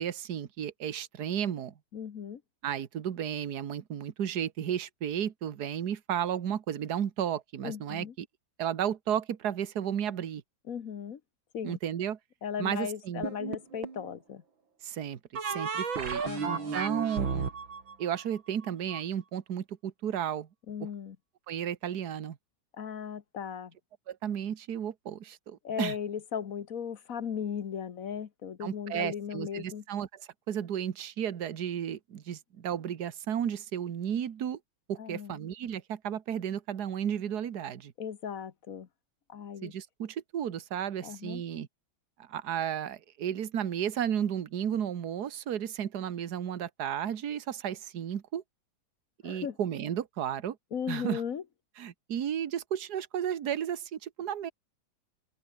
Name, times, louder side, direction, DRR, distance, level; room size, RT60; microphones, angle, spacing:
voice 1, 0.0-1.7 2.6-8.3 8.6-10.4 11.6-12.2 12.6-13.3 14.8-17.5 18.0-20.5 20.8-20.9 21.5-22.4 24.1-25.9 28.6-30.2 30.5-34.6 34.9-37.9 39.6-41.7 42.2-48.4 49.2-50.6 50.9-51.2 51.8-54.5, right 9 dB, 55° right, 1.8 m, -33 dB
voice 2, 1.9-2.4 7.6-8.1 10.7-11.2 11.5-11.8 12.4-14.4 16.2-16.8 20.7-21.2 22.8-23.7 25.6-29.8 35.0-35.4 38.0-38.9 39.3-39.7 41.0-41.4 49.2-49.6 50.7-51.4, left 7 dB, 50° left, 1.4 m, -37 dB
sound 1, 13.2-14.1 15.4-19.0, right 5 dB, 75° right, 3.5 m, -33 dB
open air
omnidirectional pair, 2.2 m